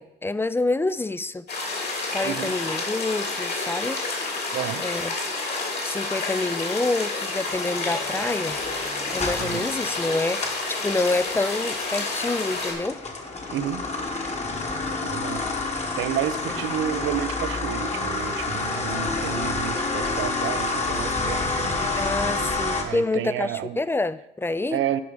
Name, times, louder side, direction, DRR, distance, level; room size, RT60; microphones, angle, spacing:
voice 1, 0.0-1.5 2.1-4.0 4.8-5.2 5.8-8.6 9.1-13.0 22.0-24.8, left 2 dB, 10° left, 16 dB, 0.4 m, -27 dB
sound 1, 1.5-12.7, left 3 dB, 55° left, 2.9 m, -29 dB
voice 2, 2.2-2.5 4.5-4.8 9.4-9.7 13.5-13.8 14.8-15.5 16.0-21.8 22.8-23.8 24.7-25.0, right 11 dB, 85° right, 13 dB, 0.6 m, -30 dB
sound 2, 7.2-10.7 11.0-22.8, left 3 dB, 35° left, 1.4 m, -29 dB
11.0 x 4.9 x 5.2 m, 0.87 s
cardioid pair, 90°, 20 cm